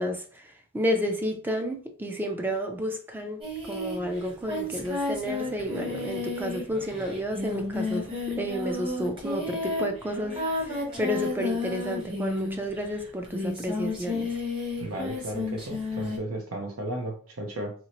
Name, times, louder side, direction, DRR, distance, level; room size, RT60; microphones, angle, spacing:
voice 1, 0.0-14.4, equal, 10° right, 0.4 m, -31 dB
Singing, 3.4-12.8 13.2-16.2, left 2 dB, 25° right, 1.0 m, -32 dB
voice 2, 14.8-17.7, right 1 dB, 90° right, 0.9 m, -34 dB
3.0 x 2.9 x 2.9 m
head